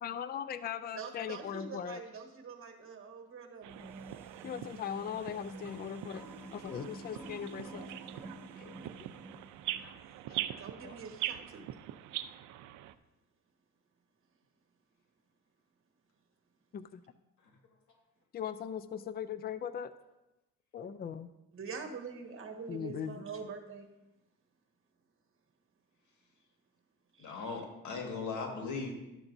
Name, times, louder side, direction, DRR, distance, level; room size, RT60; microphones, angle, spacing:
voice 1, 0.0-2.0 4.4-6.3 6.5-7.8 8.6-9.1 10.3-10.4 10.8-10.9 16.7-17.0 18.3-19.9 20.7-21.3 22.7-23.2, left 8 dB, 35° left, 14 dB, 0.4 m, -39 dB
voice 2, 1.0-3.7 10.6-11.7 21.5-23.9 27.1-27.6, right 5 dB, 45° right, 3 dB, 1.5 m, -45 dB
sound 1, 3.6-10.0, right 1 dB, 10° right, 1.1 m, -49 dB
sound 2, 3.6-12.9, right 13 dB, 80° right, 0.5 m, -43 dB
voice 3, 27.2-28.9, left 4 dB, 75° left, 2 dB, 1.8 m, -38 dB
12.0 x 7.0 x 2.6 m, 0.96 s
cardioid pair, 90°, 30 cm